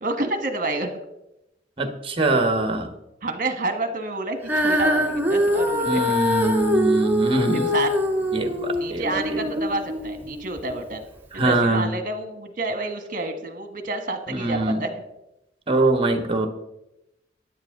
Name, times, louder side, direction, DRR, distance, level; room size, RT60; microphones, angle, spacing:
voice 1, 0.0-1.0 3.2-4.4 4.6-6.0 7.5-7.9 8.7-11.0 11.3-14.9, right 2 dB, 50° right, 7 dB, 1.6 m, -29 dB
voice 2, 1.8-2.9 5.8-7.7 8.3-9.4 11.3-11.9 14.3-14.8 15.7-16.5, right 2 dB, 30° right, 7 dB, 1.4 m, -23 dB
Female singing, 4.4-10.8 11.5-11.6, equal, 10° right, 1.6 m, -23 dB
13.5 x 10.0 x 3.8 m, 0.89 s
head